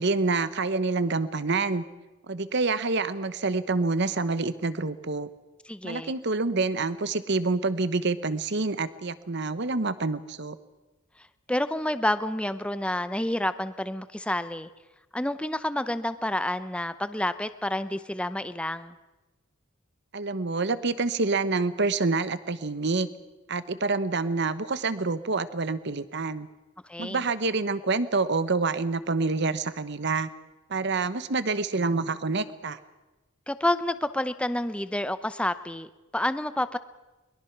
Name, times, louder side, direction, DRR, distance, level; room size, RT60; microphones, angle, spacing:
voice 1, 0.0-1.8 2.3-5.3 5.8-10.6 20.1-23.1 23.5-26.5 27.0-30.3 30.7-32.8, right 3 dB, 55° right, 14 dB, 1.0 m, -27 dB
voice 2, 5.7-6.1 11.5-14.7 15.1-19.0 26.8-27.2 33.5-36.8, left 1 dB, 5° left, 12 dB, 0.7 m, -29 dB
22.5 x 21.5 x 6.0 m, 1.1 s
head